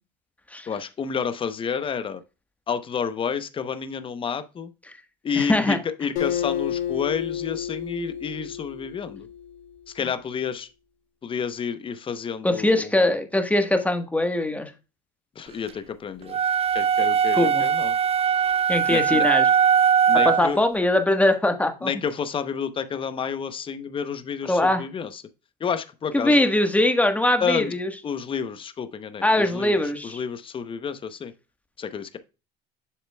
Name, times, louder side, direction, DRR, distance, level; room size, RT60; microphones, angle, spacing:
voice 1, 0.7-2.2 2.7-4.7 5.2-9.3 9.9-10.7 11.2-13.1 15.4-16.4 16.7-18.0 18.9-19.3 20.1-20.6 21.8-25.2 25.6-26.4 27.4-27.7 28.0-31.3 31.8-32.2, left 6 dB, 25° left, 0.8 m, -30 dB
voice 2, 5.4-5.8 12.4-14.7 17.3-17.6 18.7-19.4 20.1-21.9 24.5-24.8 26.1-27.9 29.2-30.2, left 1 dB, 5° left, 1.3 m, -21 dB
Acoustic guitar, 6.2-9.6, left 9 dB, 80° left, 3.0 m, -30 dB
sound 1, 16.3-20.6, right 7 dB, 30° right, 0.5 m, -20 dB
7.6 x 6.6 x 2.2 m
supercardioid pair, 110°, 20 cm